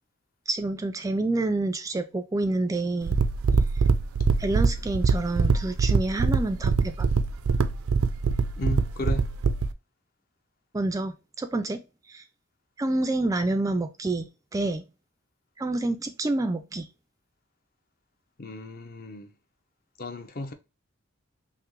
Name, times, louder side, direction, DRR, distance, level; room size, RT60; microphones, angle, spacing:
voice 1, 0.5-3.2 3.8-3.9 4.4-7.1 10.7-11.8 12.1-12.2 12.8-14.8 15.6-16.9, right 2 dB, 15° right, 0.3 m, -28 dB
sound 1, 3.0-9.7, right 4 dB, 85° right, 0.4 m, -23 dB
voice 2, 8.6-9.3 18.4-19.3 20.0-20.5, left 2 dB, 45° left, 0.6 m, -34 dB
5.7 x 2.1 x 3.0 m
head